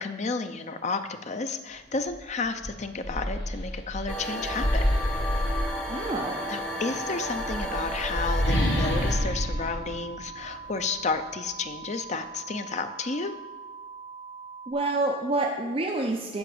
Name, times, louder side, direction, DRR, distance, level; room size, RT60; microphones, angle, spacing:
voice 1, 0.0-4.8 6.5-13.4, left 4 dB, 40° left, 8 dB, 0.6 m, -32 dB
sound 1, 2.1-2.2 2.6-6.3 7.2-10.8, equal, 70° left, 2.1 m, -28 dB
sound 2, 4.1-9.1, left 1 dB, 5° left, 1.4 m, -33 dB
sound 3, 5.6-14.7, right 5 dB, 10° right, 3.2 m, -43 dB
voice 2, 5.9-6.4 14.7-16.4, right 2 dB, 30° right, 2 dB, 0.6 m, -28 dB
7.9 x 5.7 x 7.9 m, 1.2 s
head